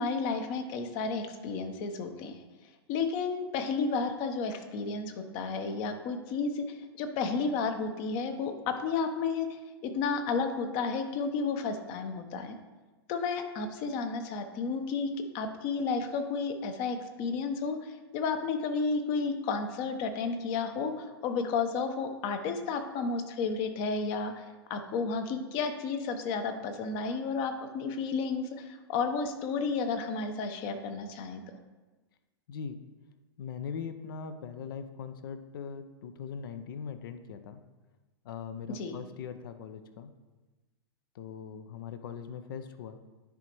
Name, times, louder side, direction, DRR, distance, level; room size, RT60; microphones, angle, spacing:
voice 1, 0.0-2.4 2.9-12.6 13.1-24.4 24.7-31.4 38.7-39.0, left 4 dB, 40° left, 7 dB, 0.9 m, -32 dB
voice 2, 33.4-37.6 38.2-40.1 41.1-43.0, left 6 dB, 55° left, 10 dB, 0.6 m, -40 dB
10.5 x 4.9 x 3.1 m, 1.2 s
figure-of-eight pair, 105°, 14 cm